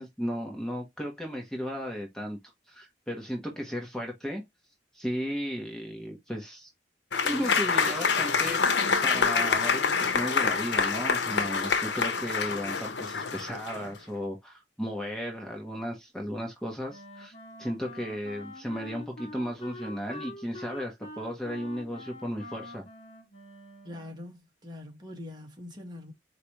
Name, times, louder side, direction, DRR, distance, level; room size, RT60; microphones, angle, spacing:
voice 1, 0.0-2.4 2.7-4.4 4.9-6.7 7.2-8.6 9.0-17.3 17.6-22.8, equal, 5° left, 1.2 m, -35 dB
Applause / Crowd, 7.1-13.9, left 5 dB, 80° left, 0.8 m, -26 dB
Wind instrument woodwind instrument, 16.9-24.3, left 2 dB, 40° left, 1.8 m, -45 dB
voice 2, 23.8-26.1, left 2 dB, 25° right, 1.6 m, -43 dB
4.9 x 3.4 x 2.9 m
head